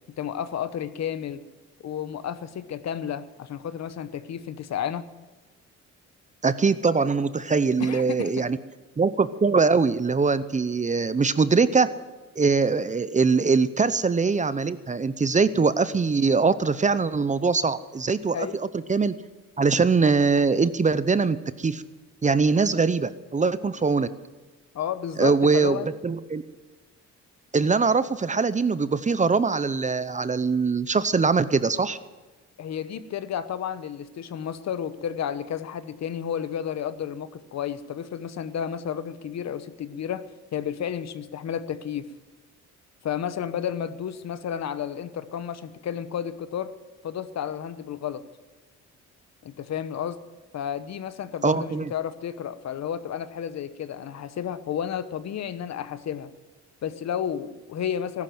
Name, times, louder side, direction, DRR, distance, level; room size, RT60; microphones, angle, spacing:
voice 1, 0.1-1.4 1.8-5.1 7.8-8.5 18.3-18.6 24.7-25.9 32.6-40.3 40.5-42.1 43.0-46.7 47.0-48.2 49.4-50.2 50.5-56.3 56.8-58.2, left 9 dB, 60° left, 13 dB, 1.0 m, -32 dB
voice 2, 6.4-8.6 9.0-11.9 12.4-19.1 19.6-21.8 22.2-24.1 25.2-25.8 26.0-26.4 27.5-32.0 51.4-51.9, right 4 dB, 25° right, 15 dB, 0.7 m, -22 dB
15.0 x 12.0 x 7.7 m, 1.2 s
cardioid pair, 90°, 30 cm